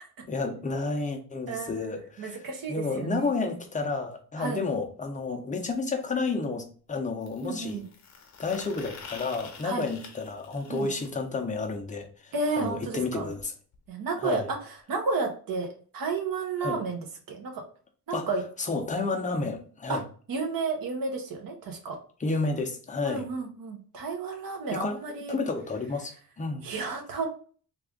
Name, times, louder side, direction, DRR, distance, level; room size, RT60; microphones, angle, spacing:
voice 1, 0.3-7.8 8.4-13.5 14.2-14.5 16.6-16.8 18.1-18.3 18.6-20.0 22.2-23.3 24.7-25.0 25.3-26.7, left 3 dB, 20° left, 0.5 m, -31 dB
voice 2, 1.5-3.3 4.4-4.6 7.4-7.9 9.6-9.9 10.7-10.9 12.3-13.3 13.9-17.6 18.1-18.4 19.9-20.0 20.3-22.0 23.0-25.4 26.6-27.3, right 4 dB, 60° right, 0.9 m, -32 dB
sound 1, 5.2-5.3 7.2-11.1 13.0-13.1 13.4-13.5 13.7-13.9 14.8-14.9, left 5 dB, 45° left, 0.8 m, -47 dB
3.4 x 2.4 x 3.5 m
wide cardioid pair, 160°, 38 cm